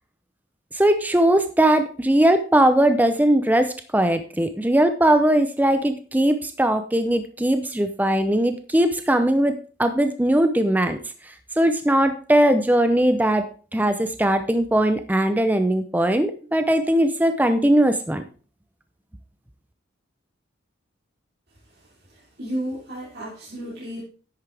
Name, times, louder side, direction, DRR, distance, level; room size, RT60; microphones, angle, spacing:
voice 1, 0.7-11.0 11.2-18.2, right 1 dB, 10° right, 9 dB, 0.6 m, -20 dB
voice 2, 22.4-24.0, equal, 55° right, -8 dB, 3.5 m, -32 dB
10.5 x 8.5 x 3.4 m, 0.39 s
head